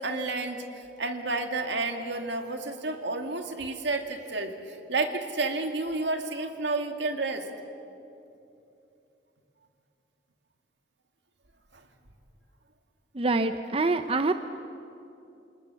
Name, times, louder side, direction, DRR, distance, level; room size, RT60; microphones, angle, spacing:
voice 1, 0.0-7.5 11.7-11.8, right 3 dB, 75° right, 5 dB, 2.4 m, -31 dB
voice 2, 13.1-14.3, right 3 dB, 30° right, 9 dB, 0.7 m, -25 dB
28.5 x 27.5 x 7.0 m, 2.8 s
head